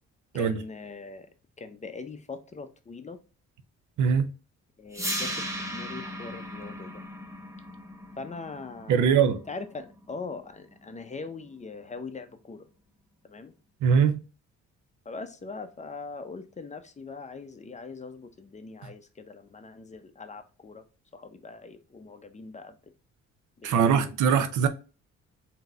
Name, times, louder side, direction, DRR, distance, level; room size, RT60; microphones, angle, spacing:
voice 1, 0.3-1.3 1.6-3.2 4.8-7.0 8.2-9.2 9.5-12.7 13.2-13.5 15.1-20.8 21.1-22.8 23.6-24.4, left 4 dB, 25° left, 0.6 m, -41 dB
voice 2, 4.0-4.3 8.9-9.4 13.8-14.2 23.6-24.7, right 7 dB, 80° right, 0.7 m, -22 dB
sound 1, 4.9-11.0, equal, 10° right, 0.8 m, -37 dB
3.8 x 2.8 x 3.5 m
cardioid pair, 90°, 30 cm